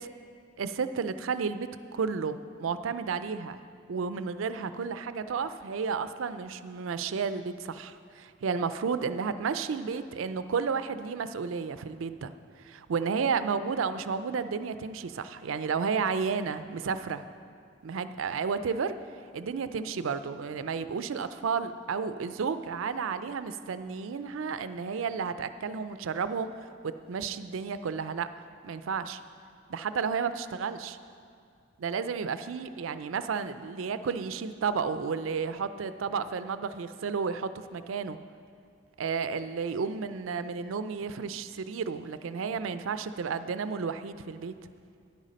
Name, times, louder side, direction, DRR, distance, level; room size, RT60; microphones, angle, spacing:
voice 1, 0.6-3.6 3.9-12.3 12.6-17.2 17.8-18.9 19.3-26.5 26.8-28.3 28.6-29.2 29.7-31.0 31.8-38.2 39.0-44.5, right 5 dB, 80° right, 12 dB, 0.4 m, -32 dB
10.5 x 8.3 x 5.1 m, 2.3 s
head